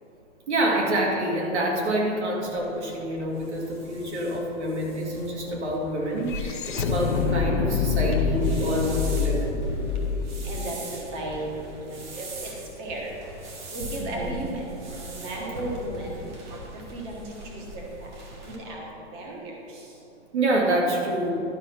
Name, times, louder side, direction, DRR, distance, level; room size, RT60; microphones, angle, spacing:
voice 1, 0.5-9.6 14.0-14.4 20.3-21.3, right 1 dB, 70° right, -1 dB, 2.4 m, -27 dB
sound 1, 2.4-18.6, right 1 dB, 40° right, 1.5 m, -41 dB
sound 2, 3.4-3.5 3.7-11.9, left 5 dB, 45° left, 0.4 m, -28 dB
voice 2, 10.4-11.4 11.8-12.5 12.8-13.1 13.7-14.6 14.9-16.2 16.9-17.2 17.5-17.9 18.5-19.5, right 1 dB, 20° right, -2 dB, 1.3 m, -35 dB
12.0 x 5.4 x 5.8 m, 3.0 s
hypercardioid pair, 175°, 35 cm